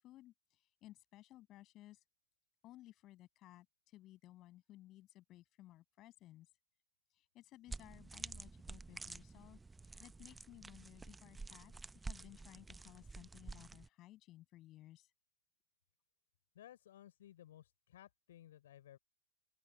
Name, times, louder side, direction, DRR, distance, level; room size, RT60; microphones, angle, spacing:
voice 1, 0.0-2.0 2.6-6.5 7.1-15.1, left 15 dB, 35° left, 7.3 m, -59 dB
sound 1, 7.7-13.9, right 3 dB, 10° right, 1.0 m, -50 dB
voice 2, 16.6-19.0, left 12 dB, 60° left, 3.6 m, -58 dB
open air
figure-of-eight pair, 90°, 0 cm